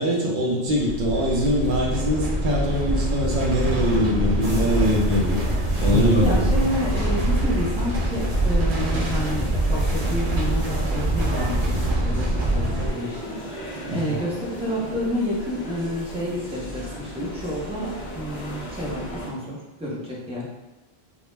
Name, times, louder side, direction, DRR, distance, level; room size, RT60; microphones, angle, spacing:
voice 1, 0.0-5.4 5.8-6.5 13.9-14.2, equal, 60° right, -2 dB, 0.6 m, -23 dB
sound 1, 0.7-12.9, right 1 dB, 85° right, 0.9 m, -24 dB
sound 2, 1.1-19.3, equal, 50° left, 0.6 m, -34 dB
sound 3, 4.4-11.9, equal, 40° right, 1.0 m, -40 dB
voice 2, 6.2-13.3 13.6-20.5, equal, 10° right, -7 dB, 0.4 m, -29 dB
2.2 x 2.0 x 3.1 m, 1.1 s
omnidirectional pair, 1.1 m